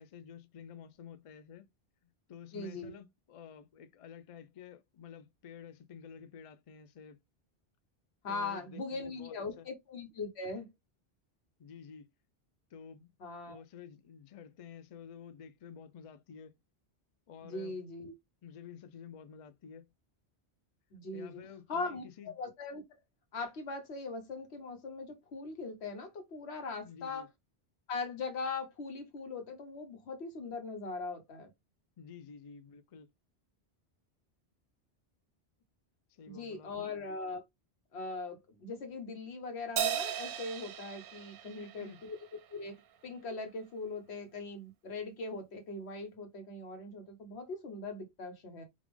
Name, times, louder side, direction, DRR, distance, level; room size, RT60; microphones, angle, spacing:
voice 1, 0.0-1.7 2.3-7.2 8.3-9.7 11.6-12.1 12.7-13.1 13.5-16.6 17.3-17.8 18.4-19.9 21.1-22.3 26.8-27.3 32.0-33.1 36.1-36.9 41.5-42.0, left 7 dB, 55° left, 0.3 m, -51 dB
voice 2, 2.5-2.9 8.2-10.7 13.2-13.6 17.4-18.1 20.9-21.4 21.7-22.8 23.3-27.2 27.9-31.5 36.3-37.4 37.9-42.2 42.5-42.8 43.0-48.6, left 3 dB, 85° left, 1.2 m, -40 dB
Crash cymbal, 39.8-42.4, right 9 dB, 65° right, 0.7 m, -36 dB
3.3 x 2.4 x 3.3 m
omnidirectional pair, 1.1 m